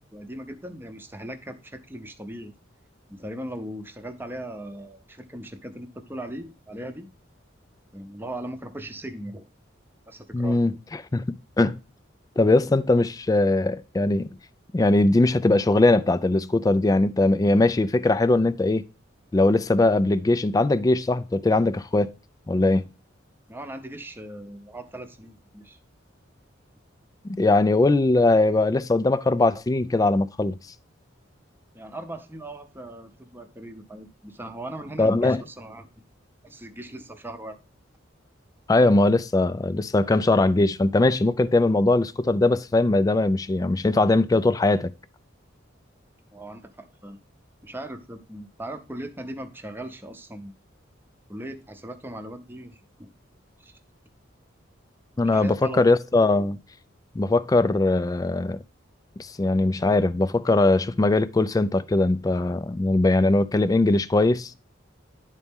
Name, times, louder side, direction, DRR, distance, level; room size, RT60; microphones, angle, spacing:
voice 1, 0.1-2.5 3.1-7.1 7.9-9.5 10.1-10.6 23.5-25.8 31.7-35.9 36.4-37.6 46.3-47.2 47.6-50.5 51.3-52.8 53.6-53.8 55.2-55.8, right 1 dB, 10° right, 0.7 m, -38 dB
voice 2, 10.3-10.7 11.1-11.2 11.6-11.8 12.4-14.3 14.7-18.8 19.3-22.1 22.5-22.8 27.2-30.6 35.0-35.4 38.7-44.9 55.2-56.6 57.2-58.6 59.2-64.5, left 2 dB, 20° left, 0.3 m, -20 dB
10.5 x 4.1 x 3.5 m
head